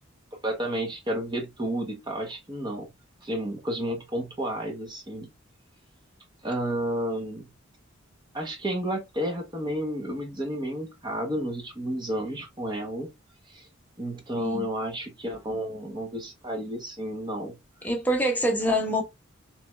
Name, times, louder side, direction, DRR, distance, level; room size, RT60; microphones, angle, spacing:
voice 1, 0.4-2.9 3.2-5.3 6.4-7.5 8.3-13.1 13.5-13.7 14.0-17.6 18.6-18.8, right 1 dB, 20° right, 0.8 m, -31 dB
voice 2, 17.8-19.0, equal, 10° left, 0.8 m, -25 dB
3.3 x 3.0 x 3.3 m
head